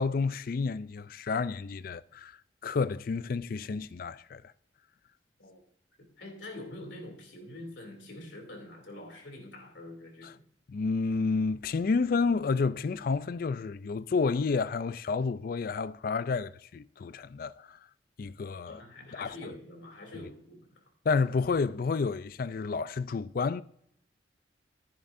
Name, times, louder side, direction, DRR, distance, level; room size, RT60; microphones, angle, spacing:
voice 1, 0.0-2.3 2.6-4.4 10.7-17.8 18.2-18.8 19.1-19.4 21.1-23.6, left 4 dB, 50° left, 0.4 m, -30 dB
voice 2, 6.0-10.4 18.7-20.8, left 1 dB, 90° left, 2.8 m, -45 dB
14.5 x 10.5 x 2.6 m
head